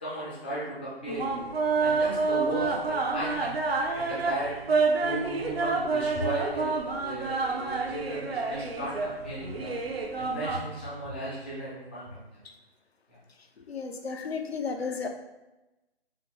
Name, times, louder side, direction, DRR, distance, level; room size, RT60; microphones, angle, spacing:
voice 1, 0.0-1.4 1.8-3.6 3.9-4.6 5.0-9.8 10.1-12.4 13.1-13.2, right 1 dB, 10° left, -10 dB, 0.4 m, -36 dB
sound 1, 1.1-10.6, right 4 dB, 80° right, 0.7 m, -28 dB
voice 2, 13.7-15.1, left 5 dB, 85° left, 4 dB, 0.7 m, -33 dB
4.0 x 2.1 x 4.1 m, 1.0 s
figure-of-eight pair, 150°, 30 cm